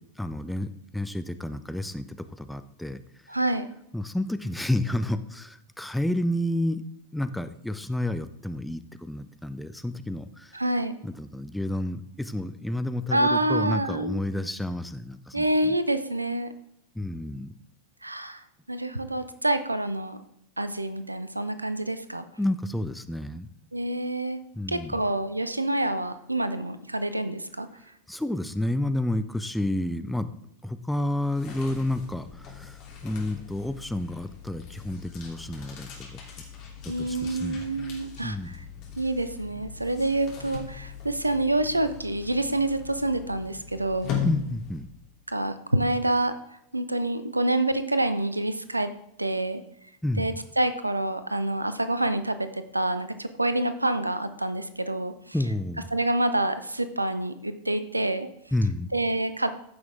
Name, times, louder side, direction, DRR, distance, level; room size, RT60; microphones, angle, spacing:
voice 1, 0.2-3.0 3.9-6.8 7.1-10.6 11.0-15.7 16.9-17.5 22.4-23.5 24.5-24.9 28.1-30.3 30.6-36.2 37.0-37.6 38.2-38.6 44.2-44.9 50.0-50.4 55.3-55.9 58.5-58.9, left 1 dB, 5° left, 10 dB, 0.6 m, -30 dB
voice 2, 3.3-3.6 10.5-10.9 13.1-14.2 15.3-16.5 18.0-18.4 18.7-20.2 20.6-22.2 23.7-24.4 24.7-27.7 36.9-38.6 39.0-44.1 45.3-46.3 46.7-48.9 49.2-49.6 50.2-55.1 55.9-58.3 58.9-59.5, right 1 dB, 85° right, 11 dB, 0.7 m, -27 dB
sound 1, 31.2-45.1, left 8 dB, 40° left, 3.1 m, -39 dB
15.0 x 6.2 x 3.6 m, 0.79 s
figure-of-eight pair, 90°, 0 cm